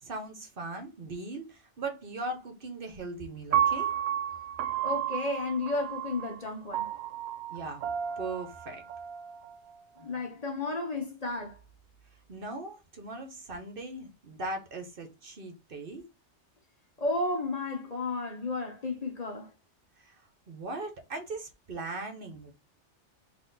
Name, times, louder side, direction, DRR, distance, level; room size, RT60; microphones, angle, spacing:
voice 1, 0.0-3.9 7.5-7.8 8.2-8.8 12.3-16.1 20.0-20.2 20.5-22.5, right 2 dB, 55° right, 1.0 m, -39 dB
Piano, 3.5-9.7, right 10 dB, 90° right, 0.9 m, -32 dB
voice 2, 4.8-6.9 10.0-11.6 17.0-19.5, left 2 dB, 40° left, 0.9 m, -33 dB
4.0 x 2.8 x 3.9 m
omnidirectional pair, 1.2 m